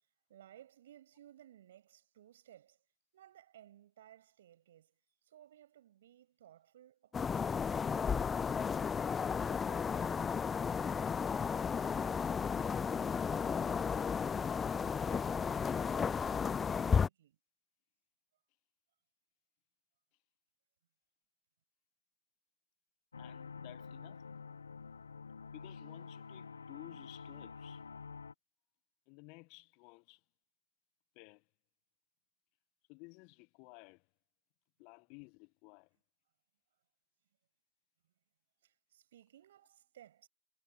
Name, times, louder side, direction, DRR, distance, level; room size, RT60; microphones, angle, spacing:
voice 1, 0.0-2.8 3.1-13.1 13.5-17.4 38.6-40.3, right 11 dB, 60° right, 7.1 m, -61 dB
sound 1, 7.1-17.1, left 6 dB, 15° left, 0.3 m, -33 dB
sound 2, 23.1-28.3, left 5 dB, 75° left, 1.5 m, -48 dB
voice 2, 23.2-24.2 25.5-27.8 29.1-30.2 31.1-31.4 32.9-34.1 34.8-36.0, left 32 dB, 40° left, 1.4 m, -55 dB
figure-of-eight pair, 105°, 0 cm